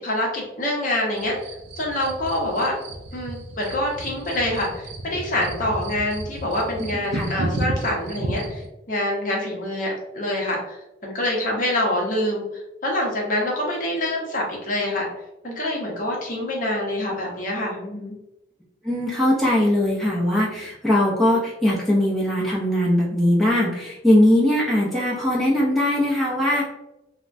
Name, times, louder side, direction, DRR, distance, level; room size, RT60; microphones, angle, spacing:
voice 1, 0.0-1.4 1.8-2.7 3.1-8.6 8.9-10.8 11.0-12.4 12.8-15.1 15.4-18.1, left 1 dB, 45° left, -2 dB, 0.7 m, -25 dB
sound 1, 1.1-8.7, right 2 dB, 65° right, 0.4 m, -32 dB
voice 2, 18.8-26.6, left 1 dB, ahead, -7 dB, 0.5 m, -20 dB
3.4 x 2.1 x 2.5 m, 0.92 s
head